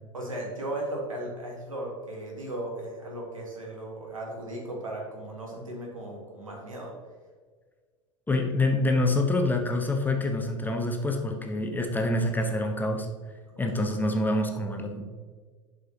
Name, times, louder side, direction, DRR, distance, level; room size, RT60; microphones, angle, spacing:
voice 1, 0.1-6.9 13.5-13.8, right 1 dB, 80° right, -1 dB, 1.9 m, -36 dB
voice 2, 8.3-13.1 13.6-15.0, left 2 dB, 10° left, 3 dB, 1.0 m, -26 dB
11.5 x 5.0 x 2.9 m, 1.5 s
figure-of-eight pair, 75°, 17 cm